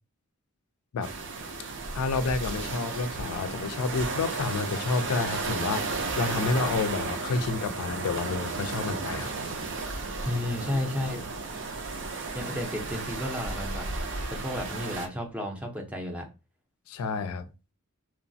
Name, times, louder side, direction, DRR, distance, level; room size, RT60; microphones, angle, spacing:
sound 1, 1.0-15.1, right 3 dB, 55° right, 0.5 m, -34 dB
voice 1, 1.9-9.3 16.9-17.5, left 4 dB, 80° left, 0.4 m, -29 dB
voice 2, 10.2-11.2 12.3-13.9 14.3-16.3, left 1 dB, 5° right, 0.5 m, -32 dB
3.0 x 2.0 x 2.6 m
head